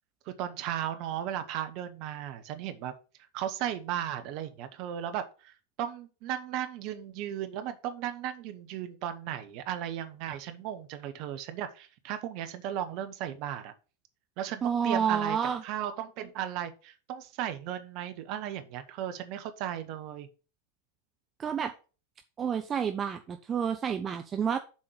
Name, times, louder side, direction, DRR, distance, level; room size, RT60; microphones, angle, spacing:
voice 1, 0.3-2.9 3.3-13.7 14.4-20.3, right 10 dB, 45° right, 1.1 m, -36 dB
voice 2, 14.6-15.6 21.4-21.7 22.4-24.6, right 7 dB, 25° right, 0.6 m, -29 dB
7.4 x 4.3 x 6.3 m
figure-of-eight pair, 90°, 0 cm